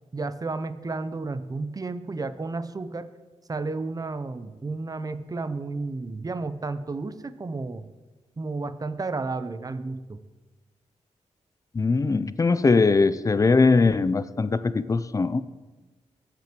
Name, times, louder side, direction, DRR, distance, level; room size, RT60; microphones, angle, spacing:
voice 1, 0.1-3.1 3.5-7.9 8.4-10.2, right 3 dB, 30° right, 12 dB, 0.5 m, -32 dB
voice 2, 11.7-15.4, left 4 dB, 30° left, 15 dB, 0.3 m, -21 dB
15.5 x 6.0 x 3.0 m, 1.2 s
cardioid pair, 75°, 12 cm